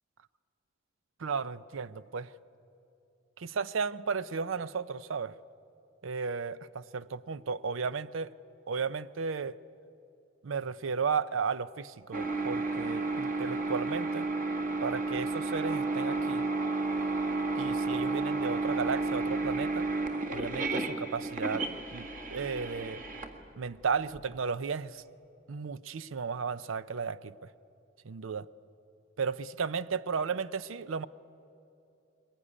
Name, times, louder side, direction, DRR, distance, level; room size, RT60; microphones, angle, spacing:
voice 1, 1.2-2.3 3.4-5.3 6.0-8.3 8.7-9.6 10.4-14.3 14.8-16.5 17.6-19.9 20.3-23.0 23.6-25.0 25.5-27.3 28.0-28.5 29.2-31.1, right 5 dB, 85° right, 16 dB, 0.6 m, -34 dB
sound 1, 12.1-24.2, right 3 dB, 40° right, 1.8 m, -32 dB
22.0 x 21.0 x 9.9 m, 2.8 s
head